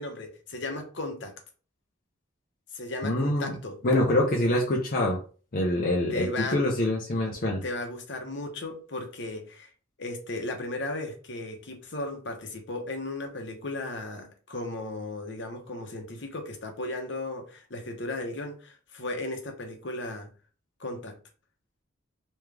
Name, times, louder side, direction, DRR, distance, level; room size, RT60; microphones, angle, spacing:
voice 1, 0.0-1.3 2.7-3.8 6.1-6.6 7.6-9.7 10.0-20.3 20.8-21.2, left 2 dB, 65° left, 4 dB, 1.0 m, -35 dB
voice 2, 3.0-3.6 3.8-5.2 5.5-7.6, left 1 dB, 45° left, -1 dB, 0.7 m, -25 dB
3.5 x 3.1 x 3.3 m, 0.38 s
head